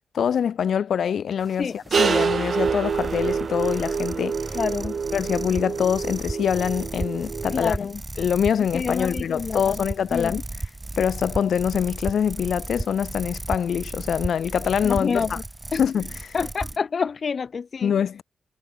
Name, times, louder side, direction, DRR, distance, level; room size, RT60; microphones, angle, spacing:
voice 1, 0.1-4.6 5.1-7.8 8.2-10.4 11.0-15.4 15.7-16.4 17.8-18.2, left 8 dB, 70° left, 3.3 m, -24 dB
sound 1, 1.4-16.8, right 2 dB, 15° right, 4.6 m, -35 dB
sound 2, 1.9-7.7, right 6 dB, 45° right, 2.7 m, -27 dB
voice 2, 4.5-5.0 7.5-8.0 8.7-9.8 10.1-10.4 14.8-15.3 15.7-15.8 16.3-17.9, left 5 dB, 45° left, 3.0 m, -27 dB
wide cardioid pair, 150°, 0 cm